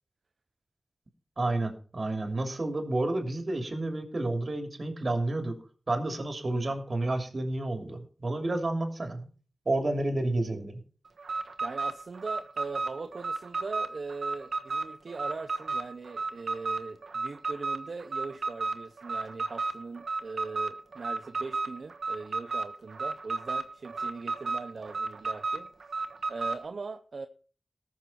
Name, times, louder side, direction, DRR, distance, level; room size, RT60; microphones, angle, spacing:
voice 1, 1.4-5.6 5.9-9.3 9.6-10.8, right 2 dB, 50° right, 5 dB, 2.8 m, -30 dB
Alarm, 11.2-26.6, right 3 dB, 85° right, 1.2 m, -33 dB
voice 2, 11.6-25.7 26.3-27.3, right 4 dB, 70° right, 7 dB, 0.7 m, -40 dB
19.0 x 6.6 x 4.5 m, 0.40 s
wide cardioid pair, 85°, 0 cm